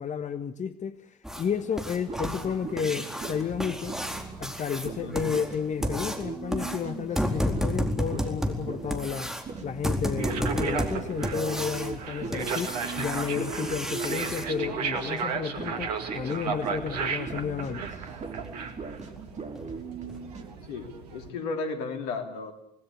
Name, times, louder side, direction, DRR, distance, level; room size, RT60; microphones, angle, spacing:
voice 1, 0.0-4.0 4.4-9.3 9.6-17.9, left 7 dB, 35° left, 10 dB, 1.4 m, -32 dB
sound 1, 1.2-14.4 16.8-16.9 17.3-17.4 17.9-18.0 18.4-18.5 19.0-19.2 19.5-19.6 20.1-20.2, equal, ahead, 4.3 m, -32 dB
sound 2, 2.0-15.2 15.5-20.4, right 4 dB, 35° right, 5.0 m, -39 dB
voice 2, 5.0-5.3 20.7-22.5, left 3 dB, 70° left, 6 dB, 3.4 m, -34 dB
sound 3, 10.2-21.3, right 6 dB, 80° right, 2.3 m, -35 dB
26.5 x 19.5 x 8.6 m, 0.73 s
figure-of-eight pair, 55°, 20 cm